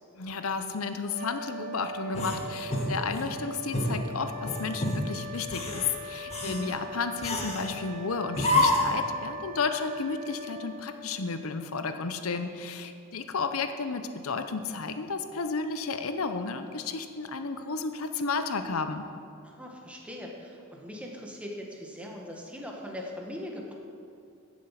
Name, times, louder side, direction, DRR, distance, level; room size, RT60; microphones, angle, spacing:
voice 1, 0.2-19.0, left 4 dB, 80° left, 8 dB, 0.8 m, -32 dB
sound 1, 1.1-11.7, equal, 40° right, 0.7 m, -41 dB
sound 2, 2.1-3.3 3.7-4.0 4.4-5.0 5.4-5.9 6.3-6.6 7.2-7.7 8.3-9.0, left 1 dB, 30° left, 1.5 m, -28 dB
voice 2, 6.4-6.7 19.4-23.7, left 1 dB, 5° right, -1 dB, 1.6 m, -40 dB
15.5 x 7.3 x 5.9 m, 2.5 s
head